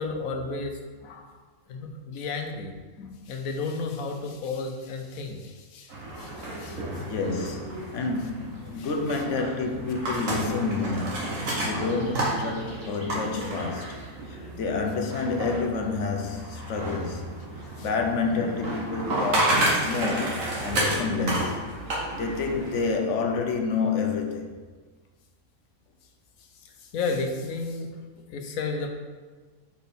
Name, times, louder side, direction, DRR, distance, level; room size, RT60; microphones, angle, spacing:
voice 1, 0.0-1.3 1.7-7.1 8.8-8.9 11.4-11.8 13.3-13.6 17.8-17.9 26.6-28.9, left 3 dB, 85° left, 1.2 m, -33 dB
sound 1, 5.9-22.8, right 1 dB, 70° right, 1.8 m, -31 dB
voice 2, 7.1-14.0 14.6-17.3 17.6-21.7 22.1-24.5, left 4 dB, 65° left, 1.1 m, -29 dB
5.2 x 4.5 x 5.3 m
omnidirectional pair, 1.4 m